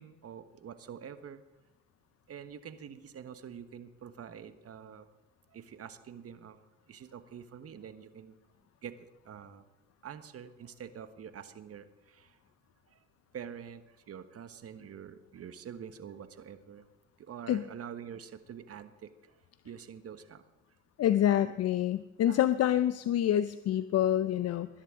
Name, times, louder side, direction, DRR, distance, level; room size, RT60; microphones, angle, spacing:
voice 1, 0.0-1.4 2.3-5.1 5.5-6.6 6.9-8.4 8.8-9.6 10.0-12.4 12.9-13.0 13.3-16.8 17.2-19.4 19.6-20.4 21.4-21.5 22.3-22.4, right 8 dB, 50° right, 10 dB, 1.3 m, -46 dB
voice 2, 21.0-24.7, left 11 dB, 55° left, 13 dB, 0.6 m, -27 dB
20.0 x 11.0 x 3.7 m, 1.0 s
supercardioid pair, 70°, 31 cm